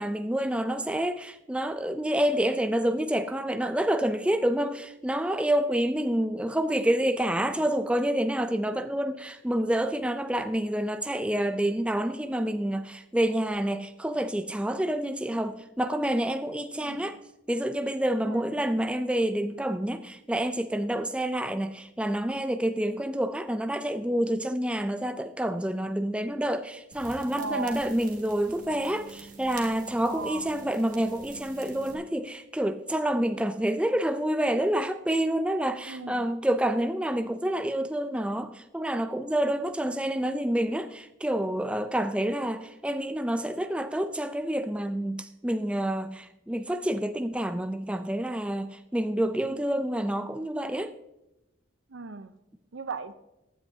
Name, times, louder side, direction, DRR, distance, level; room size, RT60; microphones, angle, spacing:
voice 1, 0.0-17.2 17.5-50.9, right 1 dB, 5° right, 0.4 m, -28 dB
voice 2, 16.8-17.1 18.2-18.5 27.4-27.8 30.0-30.5 35.8-36.3 51.9-52.3 52.7-53.1, right 4 dB, 85° right, 0.7 m, -36 dB
sound 1, 26.9-31.9, right 4 dB, 45° right, 1.7 m, -47 dB
15.5 x 9.7 x 2.8 m
head